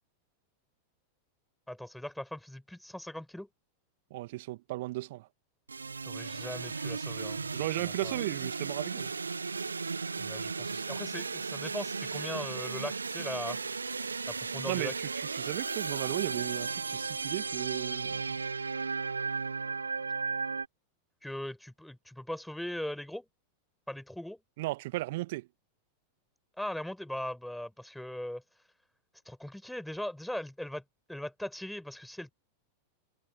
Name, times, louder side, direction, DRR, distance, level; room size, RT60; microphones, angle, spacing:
voice 1, 1.7-3.5 6.0-8.2 10.2-13.6 14.3-14.9 21.2-23.2 23.9-24.4 26.6-28.4 29.3-30.8 31.1-32.3, left 1 dB, ahead, 5.3 m, -40 dB
voice 2, 4.1-5.3 7.5-9.1 14.7-18.4 24.6-25.5, right 19 dB, 50° right, 2.0 m, -35 dB
sound 1, 5.7-20.7, right 4 dB, 75° right, 1.4 m, -35 dB
figure-of-eight pair, 90°, 0 cm